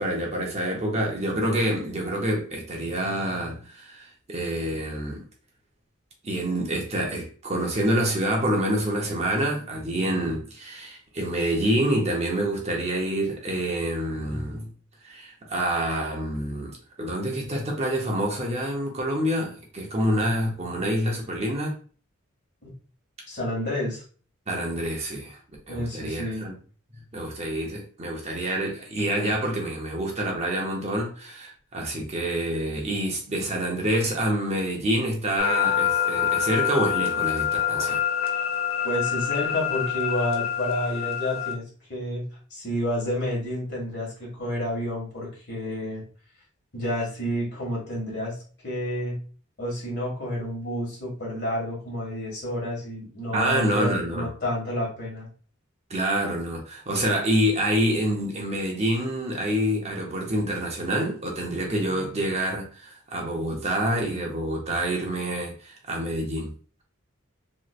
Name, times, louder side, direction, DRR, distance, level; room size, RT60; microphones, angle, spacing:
voice 1, 0.0-5.2 6.2-14.7 15.0-16.7 17.0-21.7 24.5-25.4 25.7-26.5 27.1-38.0 53.3-54.3 55.9-66.5, right 1 dB, 30° right, 0.8 m, -27 dB
voice 2, 23.3-24.0 25.7-26.5 38.8-42.2 42.5-46.0 46.7-48.4 48.6-49.1 49.6-55.3, left 1 dB, 55° left, 1.7 m, -30 dB
sound 1, 35.4-41.5, left 9 dB, 85° left, 0.8 m, -26 dB
3.2 x 3.1 x 2.4 m
head